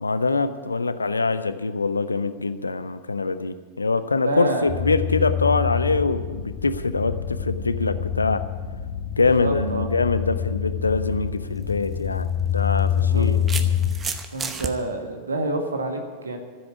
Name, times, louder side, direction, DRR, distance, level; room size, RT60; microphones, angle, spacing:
voice 1, 0.0-8.5 9.2-13.4, left 3 dB, 80° left, 12 dB, 0.6 m, -24 dB
voice 2, 4.2-4.7 9.4-9.9 13.0-13.3 13.5-13.7 14.3-16.4, right 2 dB, 75° right, 4 dB, 1.8 m, -28 dB
sound 1, 4.7-13.9, left 9 dB, 45° left, 1.8 m, -26 dB
sound 2, 11.5-11.7 12.8-14.7, right 5 dB, 20° right, 1.0 m, -31 dB
14.0 x 8.0 x 9.7 m, 1.5 s
figure-of-eight pair, 90°, 0 cm